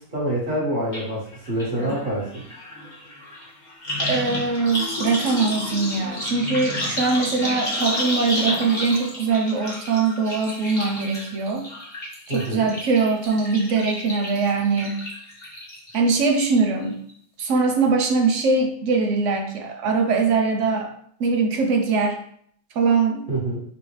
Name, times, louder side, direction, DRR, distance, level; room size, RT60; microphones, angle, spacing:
voice 1, 0.1-2.4 12.3-12.7 23.3-23.6, right 1 dB, 30° right, -6 dB, 1.6 m, -26 dB
sound 1, 0.9-1.0 1.3-16.0 16.3-16.8 17.1-17.2, left 1 dB, 30° left, 1.1 m, -31 dB
voice 2, 4.0-11.7 12.3-15.0 15.9-17.0 17.4-20.9 21.2-22.2 22.7-23.3, right 4 dB, 65° right, 3 dB, 0.8 m, -22 dB
5.7 x 2.7 x 3.1 m, 0.63 s
omnidirectional pair, 1.8 m